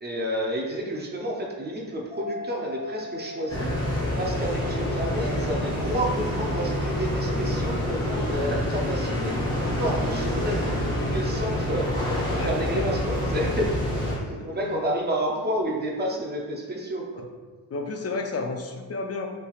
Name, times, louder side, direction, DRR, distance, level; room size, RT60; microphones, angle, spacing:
voice 1, 0.0-3.7 4.2-9.5 9.8-11.9 12.3-13.8 14.2-17.2, equal, 25° right, -1 dB, 0.5 m, -30 dB
sound 1, 2.1-9.2, left 1 dB, 10° right, 1.0 m, -42 dB
sound 2, 3.5-14.2, equal, 10° left, 1.3 m, -27 dB
voice 2, 12.4-12.9 14.4-14.8 17.7-19.3, left 3 dB, 40° left, 4 dB, 0.5 m, -32 dB
5.6 x 3.3 x 2.3 m, 1.4 s
wide cardioid pair, 150°, 39 cm